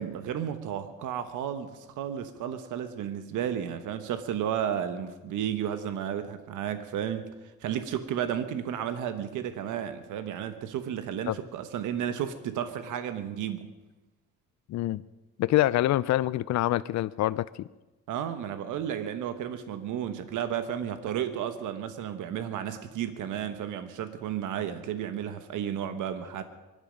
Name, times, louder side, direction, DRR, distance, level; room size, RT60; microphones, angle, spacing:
voice 1, 0.0-7.3 7.6-13.7 18.1-26.4, right 9 dB, 85° right, 9 dB, 1.2 m, -33 dB
voice 2, 14.7-15.0 15.4-17.7, left 14 dB, 65° left, 17 dB, 0.5 m, -26 dB
24.5 x 11.5 x 5.2 m, 1.1 s
cardioid pair, 90°, 30 cm